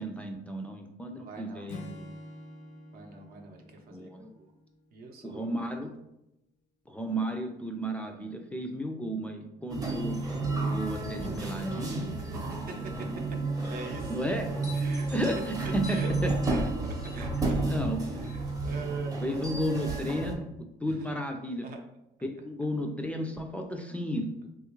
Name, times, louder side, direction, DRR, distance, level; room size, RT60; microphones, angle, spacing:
voice 1, 0.0-2.1 3.9-4.2 5.2-5.9 6.9-10.2 10.7-12.1 14.1-14.5 15.1-16.4 17.5-18.0 19.2-20.5 20.8-21.6 22.2-24.3, equal, 10° left, 3 dB, 0.3 m, -33 dB
voice 2, 1.2-1.7 2.9-4.5 4.9-5.6 12.5-13.1 13.6-14.1 14.7-15.1 15.9-17.8 18.1-19.5 21.6-21.8, right 3 dB, 60° right, 3 dB, 0.6 m, -43 dB
Acoustic guitar / Strum, 1.7-5.2, left 1 dB, 85° left, 0.6 m, -47 dB
sound 1, 9.7-20.3, right 2 dB, 20° right, 0.7 m, -32 dB
3.4 x 2.3 x 3.0 m, 0.85 s
cardioid pair, 110°, 17 cm